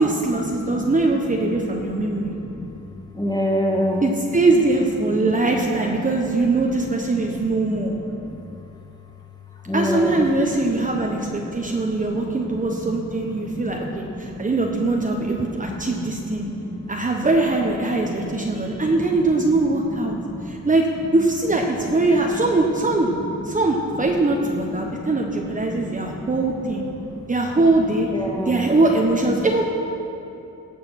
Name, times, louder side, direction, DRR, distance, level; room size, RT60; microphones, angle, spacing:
voice 1, 0.0-2.3 4.0-7.9 9.7-16.5 16.9-20.2 20.4-20.9 21.1-23.2 23.4-26.9 27.3-28.1 28.4-29.7, right 2 dB, 25° right, 0 dB, 1.1 m, -21 dB
voice 2, 2.0-2.7 3.1-4.1 7.0-8.2 9.7-10.3 11.5-12.3 12.8-12.9 13.2-14.5 15.6-15.8 16.6-16.9 18.2-18.9 20.0-20.6 24.8-25.1 25.6-26.3 27.0-27.2 28.1-28.7, left 1 dB, 10° left, -1 dB, 2.1 m, -29 dB
17.5 x 6.8 x 6.0 m, 2.8 s
cardioid pair, 90°, 31 cm